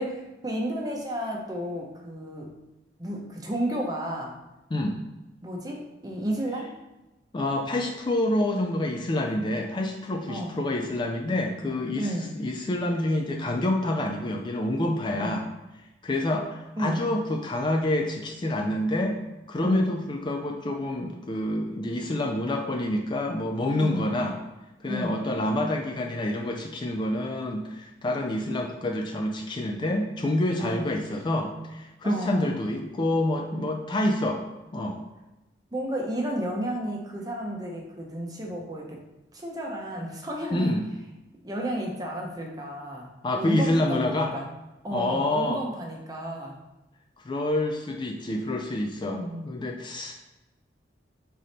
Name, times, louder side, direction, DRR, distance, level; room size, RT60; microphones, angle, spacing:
voice 1, 0.0-2.5 3.0-4.3 5.4-6.7 10.3-10.6 12.0-12.3 15.1-15.4 16.8-17.1 19.6-19.9 23.8-24.1 24.9-25.2 30.6-30.9 32.0-32.6 35.7-39.0 39.3-40.7 41.4-44.5 44.8-46.6 49.1-49.6, right 1 dB, 20° right, -1 dB, 0.8 m, -32 dB
voice 2, 7.3-15.4 16.0-19.2 19.5-24.4 24.8-34.4 34.7-35.0 40.5-40.8 43.2-44.3 44.9-45.6 47.3-50.1, left 1 dB, 25° left, 2 dB, 0.3 m, -27 dB
3.8 x 3.4 x 4.1 m, 1.0 s
head